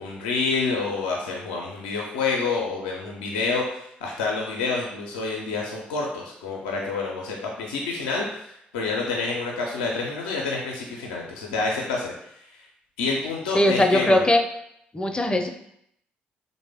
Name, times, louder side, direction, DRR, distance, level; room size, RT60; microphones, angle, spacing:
voice 1, 0.0-3.6 4.0-12.1 13.0-14.3, left 4 dB, 85° left, -1 dB, 0.4 m, -28 dB
voice 2, 13.5-14.4 14.9-15.5, left 1 dB, 20° left, 5 dB, 0.4 m, -20 dB
3.1 x 2.1 x 3.4 m, 0.74 s
hypercardioid pair, 45°, 5 cm